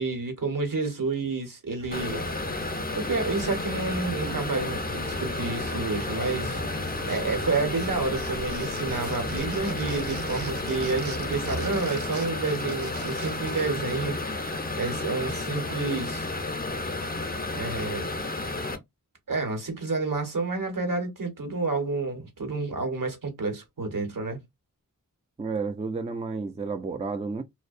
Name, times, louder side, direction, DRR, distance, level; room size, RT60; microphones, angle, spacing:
voice 1, 0.0-2.2 2.7-6.6 7.0-16.3 17.5-18.1 19.3-24.4, right 3 dB, 65° right, 1.0 m, -30 dB
sound 1, 1.8-11.8, right 2 dB, 45° right, 0.7 m, -39 dB
sound 2, 1.9-18.8, left 2 dB, 25° left, 0.6 m, -32 dB
sound 3, 6.8-7.5 7.7-13.7, right 5 dB, 90° right, 0.6 m, -44 dB
voice 2, 25.4-27.4, right 4 dB, 20° right, 0.3 m, -31 dB
2.6 x 2.0 x 2.4 m
wide cardioid pair, 55°, 35 cm